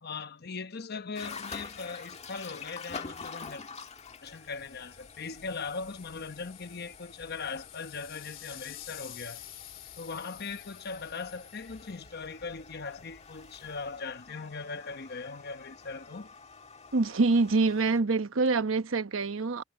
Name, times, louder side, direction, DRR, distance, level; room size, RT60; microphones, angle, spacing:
voice 1, 0.0-3.6 4.2-9.4 10.0-16.3, left 4 dB, 55° left, 1.0 m, -39 dB
sound 1, 1.2-18.0, left 5 dB, 35° left, 1.7 m, -48 dB
sound 2, 3.9-14.1, left 11 dB, 70° left, 3.3 m, -50 dB
voice 2, 16.9-19.6, right 3 dB, 85° right, 1.0 m, -25 dB
head